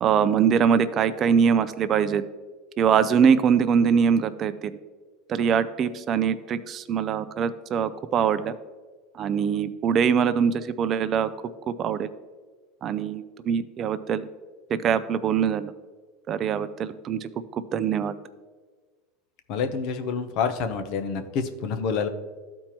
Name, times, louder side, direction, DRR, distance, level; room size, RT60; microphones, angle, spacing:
voice 1, 0.0-2.2 2.8-4.8 5.3-8.5 9.1-11.3 11.7-12.1 12.8-14.3 14.7-15.7 16.3-18.1, right 7 dB, 35° right, 12 dB, 0.5 m, -23 dB
voice 2, 19.5-22.1, left 6 dB, 55° left, 8 dB, 0.8 m, -27 dB
13.0 x 4.4 x 3.0 m, 1.4 s
supercardioid pair, 130°, 0 cm